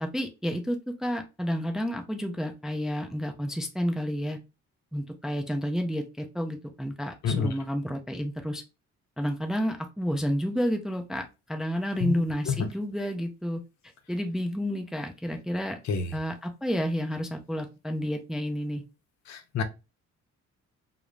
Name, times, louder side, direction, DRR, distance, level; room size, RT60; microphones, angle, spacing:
voice 1, 0.0-4.4 4.9-8.6 9.2-13.6 14.1-15.8 16.1-18.8, equal, ahead, 0.4 m, -30 dB
voice 2, 19.3-19.6, left 5 dB, 65° left, 0.6 m, -28 dB
2.3 x 2.0 x 3.1 m
cardioid pair, 90°, 30 cm